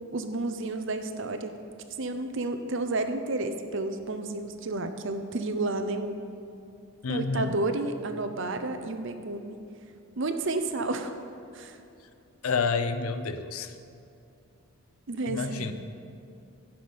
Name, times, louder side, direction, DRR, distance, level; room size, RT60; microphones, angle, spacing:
voice 1, 0.1-1.6 2.0-6.3 7.1-9.6 10.2-11.1 11.5-11.8 15.1-15.7, right 2 dB, 60° right, 8 dB, 0.7 m, -31 dB
voice 2, 7.0-7.5 12.4-13.7 15.3-15.7, left 4 dB, 80° left, 10 dB, 0.6 m, -29 dB
15.0 x 6.0 x 5.2 m, 2.6 s
head